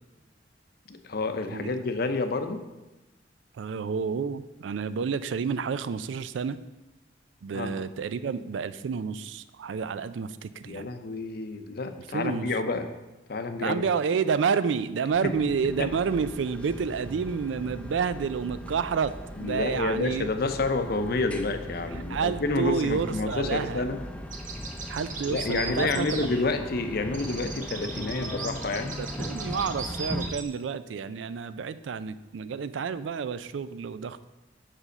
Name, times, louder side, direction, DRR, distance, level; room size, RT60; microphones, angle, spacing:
voice 1, 0.9-2.6 7.5-7.7 10.6-12.9 13.3-13.9 15.2-15.3 15.6-15.9 19.4-24.0 25.2-29.0, left 3 dB, 55° left, 8 dB, 0.7 m, -29 dB
voice 2, 3.6-6.6 7.4-10.9 12.1-12.5 13.6-19.1 19.4-20.3 22.1-23.8 24.9-26.1 29.0-34.2, right 6 dB, 85° right, 14 dB, 0.4 m, -29 dB
sound 1, 15.1-30.3, equal, 5° left, 0.5 m, -39 dB
sound 2, 24.3-26.8 27.1-30.4, right 4 dB, 45° right, 1.0 m, -38 dB
5.5 x 5.0 x 6.5 m, 1.1 s
head